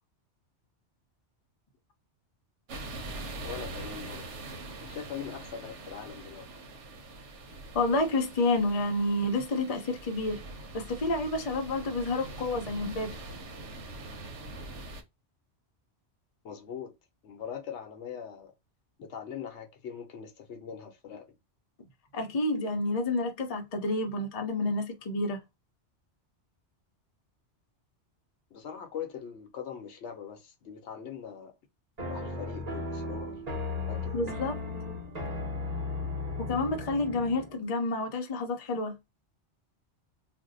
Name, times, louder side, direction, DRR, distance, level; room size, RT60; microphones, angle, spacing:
sound 1, 2.7-15.0, right 2 dB, 85° right, 1.0 m, -43 dB
voice 1, 3.4-4.2 4.8-6.5 16.4-16.9 17.2-18.5 19.0-21.3 28.5-31.5 32.1-33.4 33.9-34.3, left 8 dB, 75° left, 0.9 m, -41 dB
voice 2, 7.7-10.4 10.7-13.1 22.1-25.4 34.1-34.5 36.4-39.0, left 2 dB, 40° left, 0.6 m, -29 dB
sound 2, 32.0-37.5, left 3 dB, 35° right, 1.0 m, -36 dB
2.6 x 2.1 x 3.7 m
omnidirectional pair, 1.2 m